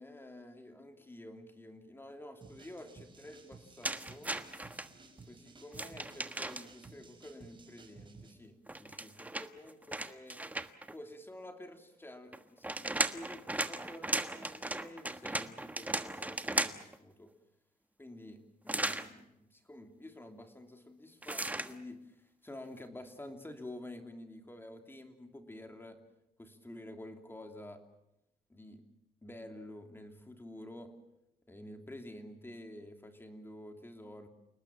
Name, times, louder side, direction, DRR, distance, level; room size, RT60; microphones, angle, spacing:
voice 1, 0.0-4.3 5.3-10.4 10.9-17.3 18.0-22.2 22.4-26.0 26.4-27.8 28.5-28.8 29.2-30.9 31.5-34.3, left 1 dB, 15° left, 5 dB, 3.0 m, -49 dB
sound 1, 2.4-8.3, right 3 dB, 30° right, 5.9 m, -56 dB
sound 2, 3.8-4.9 5.7-6.9 8.7-10.9 12.3-17.0 18.7-19.1 21.2-21.7, right 1 dB, 10° right, 1.3 m, -36 dB
29.0 x 19.5 x 7.3 m, 0.86 s
cardioid pair, 110°, 16 cm